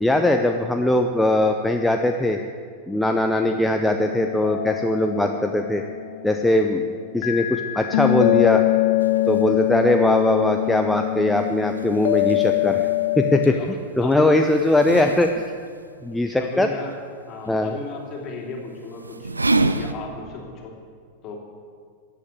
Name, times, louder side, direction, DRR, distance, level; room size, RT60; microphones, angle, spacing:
voice 1, 0.0-2.4 2.9-5.8 6.2-8.6 9.3-12.9 13.2-15.4 16.0-16.7 17.5-17.7, left 1 dB, 5° left, 4 dB, 0.7 m, -20 dB
sound 1, 4.0-6.7 7.2-13.5, left 18 dB, 50° left, 0.4 m, -23 dB
sound 2, 9.0-19.9, right 2 dB, 80° right, 0.5 m, -32 dB
voice 2, 14.0-14.8 16.3-17.0 17.3-19.3 19.7-20.8 21.2-21.4, left 3 dB, 35° left, 0 dB, 3.1 m, -34 dB
14.0 x 8.6 x 8.1 m, 2.1 s
figure-of-eight pair, 90°, 0 cm